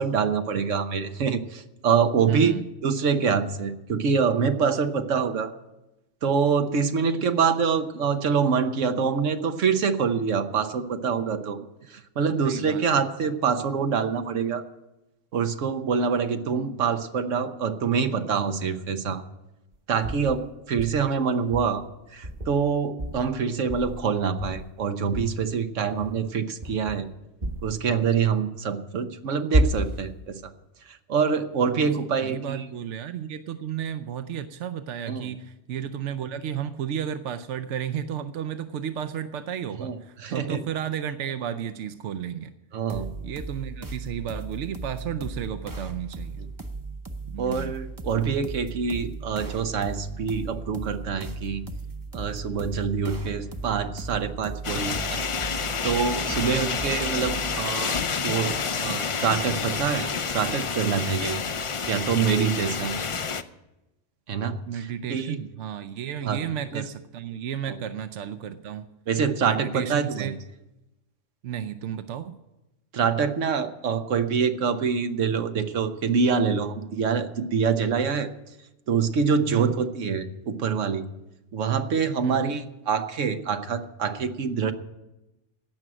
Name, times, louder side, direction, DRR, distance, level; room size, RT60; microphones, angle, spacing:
voice 1, 0.0-2.6 2.8-5.5 6.2-11.6 11.9-14.6 15.3-19.2 19.9-21.8 22.1-27.1 27.6-30.5 31.1-32.7 35.1-35.3 39.8-39.9 40.2-40.6 42.7-43.1 47.4-51.6 52.1-55.3 55.8-61.4 61.9-62.9 64.3-65.4 66.2-66.4 66.7-66.8 67.7-67.8 69.1-70.3 72.9-78.3 78.9-81.0 81.5-84.7, right 6 dB, 90° right, 8 dB, 1.3 m, -25 dB
voice 2, 2.3-2.6 12.4-12.8 16.6-16.8 32.2-42.5 43.2-46.4 47.2-47.7 56.5-56.8 64.7-68.9 69.4-70.4 71.4-72.3 79.5-79.7 82.2-82.6, right 9 dB, 75° right, 10 dB, 1.0 m, -33 dB
sound 1, 20.0-20.4 20.8-21.1 21.5-21.8 22.2-22.7 23.0-23.3 23.7-24.1 24.4-24.8 25.1-25.4 25.9-26.3 26.6-27.1 27.4-27.8 29.5-30.1, right 1 dB, 35° right, 1.1 m, -29 dB
sound 2, 42.9-57.7, right 3 dB, 20° right, 0.7 m, -37 dB
sound 3, 54.6-63.4, left 5 dB, 45° left, 0.4 m, -29 dB
16.5 x 6.2 x 8.8 m, 0.96 s
omnidirectional pair, 1.2 m